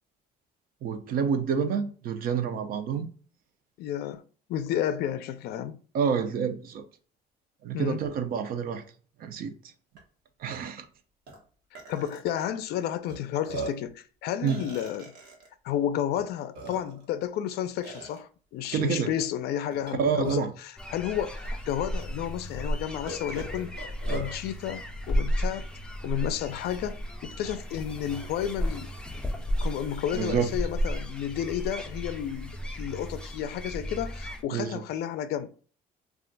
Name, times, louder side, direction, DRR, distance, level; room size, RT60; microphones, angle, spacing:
voice 1, 0.8-3.1 5.9-6.8 7.6-8.8 9.2-9.5 10.4-10.9 14.4-14.6 18.7-19.1 20.0-20.5 30.1-30.5 34.5-34.8, right 6 dB, 60° right, 0.5 m, -28 dB
voice 2, 3.8-4.2 4.5-5.8 7.7-8.0 11.9-15.1 15.6-23.7 24.1-25.7 26.0-28.9 29.6-35.5, left 10 dB, 75° left, 0.4 m, -32 dB
Burping eructation, 10.0-10.1 10.4-10.6 11.3-11.4 11.7-12.4 13.1-13.2 13.4-13.9 14.5-15.5 16.2-16.3 16.5-17.1 17.8-18.2 19.7-20.6 21.4-21.5 22.0-22.1 23.1-24.3, right 2 dB, 85° right, 1.1 m, -39 dB
sound 1, 20.8-34.4, equal, 5° left, 0.4 m, -33 dB
2.4 x 2.1 x 3.9 m
cardioid pair, 110°, 17 cm